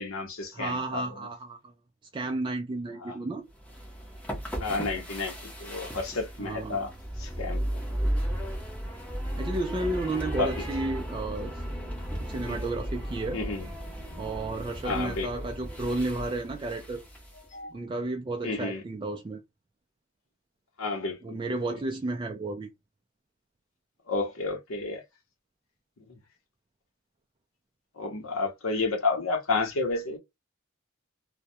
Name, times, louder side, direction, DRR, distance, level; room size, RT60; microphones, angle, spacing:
voice 1, 0.0-1.3 3.0-3.2 4.6-6.9 7.2-7.8 10.4-10.7 12.5-12.6 13.3-13.7 14.8-15.3 17.5-17.7 18.4-18.8 20.8-21.4 24.1-25.0 26.1-26.2 28.0-30.2, left 3 dB, 85° left, 0.8 m, -31 dB
voice 2, 0.5-1.6 2.1-3.4 6.4-6.8 9.4-11.6 12.2-13.4 14.1-17.0 17.7-19.4 21.2-22.7, right 2 dB, 25° right, 0.3 m, -32 dB
sound 1, 3.6-17.4, equal, 5° left, 0.6 m, -35 dB
2.2 x 2.1 x 2.6 m
head